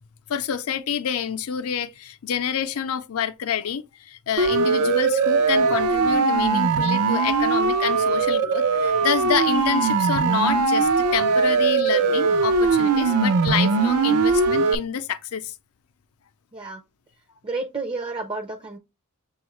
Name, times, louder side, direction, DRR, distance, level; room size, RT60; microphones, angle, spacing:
voice 1, 0.3-15.5, left 8 dB, 75° left, 0.5 m, -28 dB
Siren, 4.4-14.8, right 4 dB, 85° right, 0.5 m, -20 dB
voice 2, 17.4-18.8, right 3 dB, 25° right, 0.4 m, -30 dB
6.9 x 2.3 x 3.0 m
head